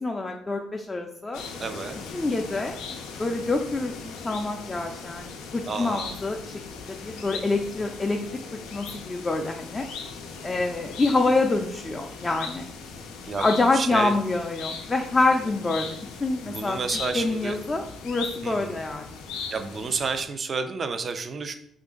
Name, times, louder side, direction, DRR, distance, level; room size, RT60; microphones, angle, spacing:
voice 1, 0.0-1.4 2.1-2.8 3.2-8.2 8.7-9.8 10.4-12.6 13.4-16.8 17.1-19.2, left 3 dB, 25° left, 2 dB, 0.4 m, -26 dB
sound 1, 1.3-20.2, left 5 dB, 90° left, 0.4 m, -39 dB
voice 2, 1.6-2.0 5.7-6.2 10.5-10.7 13.3-13.5 13.7-14.1 16.5-17.6 18.4-18.8 19.5-21.5, right 4 dB, 45° right, 8 dB, 0.4 m, -30 dB
2.9 x 2.5 x 3.7 m, 0.69 s
supercardioid pair, 70°, 0 cm